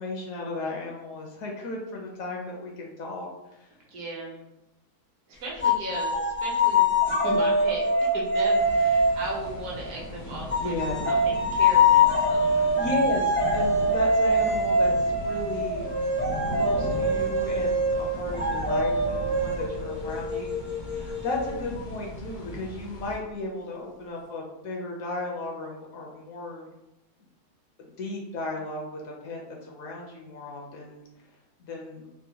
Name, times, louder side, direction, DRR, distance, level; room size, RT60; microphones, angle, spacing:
voice 1, 0.0-3.7 10.6-11.1 12.0-12.1 12.4-15.9 16.5-20.5 20.8-26.7 27.8-31.0 31.6-32.1, left 2 dB, 70° left, -1 dB, 0.9 m, -34 dB
voice 2, 3.9-4.4 5.3-10.8 11.0-12.6, right 1 dB, 70° right, -2 dB, 1.2 m, -37 dB
sound 1, 5.6-10.0 10.5-21.9, left 1 dB, 15° left, 0.4 m, -24 dB
sound 2, 8.6-23.2, left 1 dB, 85° left, 0.4 m, -38 dB
3.6 x 2.2 x 2.7 m, 0.92 s
omnidirectional pair, 1.7 m